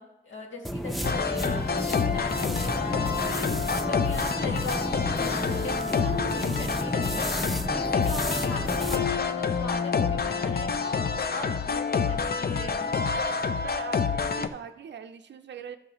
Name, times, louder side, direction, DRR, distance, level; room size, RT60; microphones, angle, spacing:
voice 1, 0.0-7.3 7.7-10.9 11.3-12.9, left 2 dB, 80° left, 0 dB, 1.9 m, -39 dB
sound 1, 0.6-9.0, equal, ahead, 0.6 m, -32 dB
sound 2, 1.0-14.5, left 5 dB, 50° left, 0.5 m, -28 dB
voice 2, 13.6-15.8, right 7 dB, 65° right, 7 dB, 0.5 m, -42 dB
12.0 x 6.3 x 3.0 m, 0.94 s
cardioid pair, 75°, 20 cm